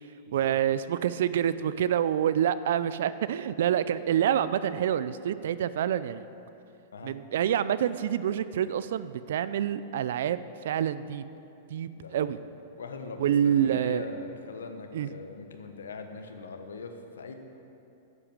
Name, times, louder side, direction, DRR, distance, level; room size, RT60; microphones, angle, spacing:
voice 1, 0.3-6.2 7.0-11.2 11.7-12.4 13.2-14.1 14.9-15.1, right 10 dB, 70° right, 15 dB, 0.4 m, -27 dB
voice 2, 11.9-12.4 12.8-17.3, left 4 dB, 85° left, 6 dB, 1.1 m, -41 dB
10.5 x 8.1 x 7.4 m, 2.8 s
hypercardioid pair, 115°, 0 cm